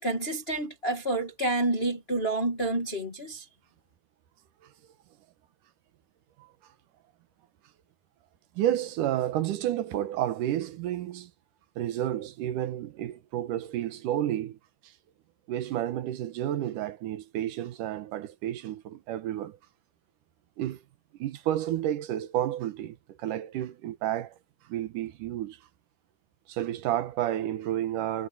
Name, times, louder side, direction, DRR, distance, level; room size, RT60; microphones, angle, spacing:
voice 1, 0.0-3.5, right 2 dB, 20° left, 2.1 m, -29 dB
voice 2, 8.6-11.3 11.8-14.6 15.5-19.6 20.6-20.8 21.2-24.4 24.7-25.6 26.5-28.3, right 12 dB, 90° right, 2.7 m, -31 dB
omnidirectional pair, 3.6 m